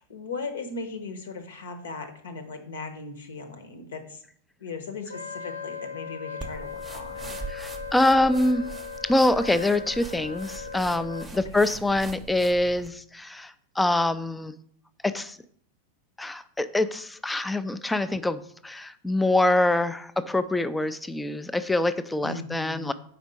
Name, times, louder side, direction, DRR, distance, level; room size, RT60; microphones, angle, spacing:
voice 1, 0.0-4.2 4.6-7.4 11.3-11.4 22.2-22.9, left 4 dB, 60° left, 7 dB, 1.0 m, -38 dB
Wind instrument woodwind instrument, 5.1-11.3, left 5 dB, 80° left, 0.7 m, -38 dB
sound 1, 6.4-12.9, right 4 dB, 15° right, 0.8 m, -42 dB
voice 2, 7.5-8.7 9.0-14.5 15.0-15.4 16.2-22.9, left 2 dB, 5° left, 13 dB, 0.4 m, -25 dB
5.0 x 4.3 x 5.2 m, 0.62 s
figure-of-eight pair, 90°, 0 cm